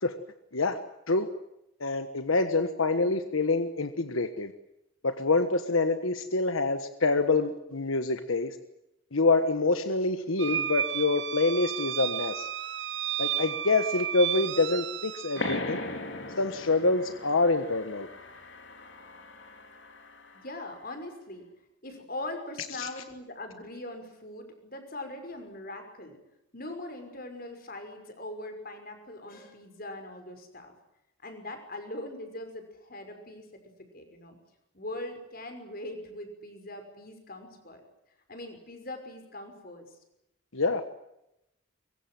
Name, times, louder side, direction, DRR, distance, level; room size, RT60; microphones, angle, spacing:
voice 1, 1.8-4.5 5.0-8.6 9.1-12.5 13.2-15.8 16.4-18.1 22.8-22.9 40.5-40.9, left 3 dB, 85° left, 9 dB, 1.4 m, -26 dB
sound 1, 10.4-15.6, right 10 dB, 60° right, 0.9 m, -33 dB
sound 2, 15.4-20.6, left 2 dB, 60° left, 3.9 m, -39 dB
voice 2, 20.3-21.4 21.8-26.2 26.5-30.7 31.2-33.5 33.9-34.4 34.7-37.8 38.3-39.9, left 1 dB, 45° left, 6 dB, 5.8 m, -41 dB
24.0 x 23.0 x 7.7 m, 0.88 s
head